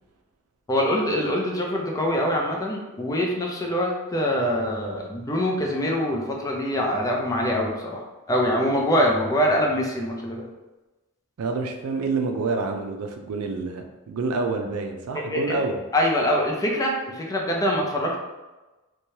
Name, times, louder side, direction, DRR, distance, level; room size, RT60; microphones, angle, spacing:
voice 1, 0.7-10.5 15.3-15.6 15.9-18.2, equal, 15° left, -1 dB, 0.4 m, -24 dB
voice 2, 11.4-15.8, right 4 dB, 85° right, 4 dB, 0.4 m, -28 dB
3.1 x 2.2 x 2.7 m, 1.1 s
head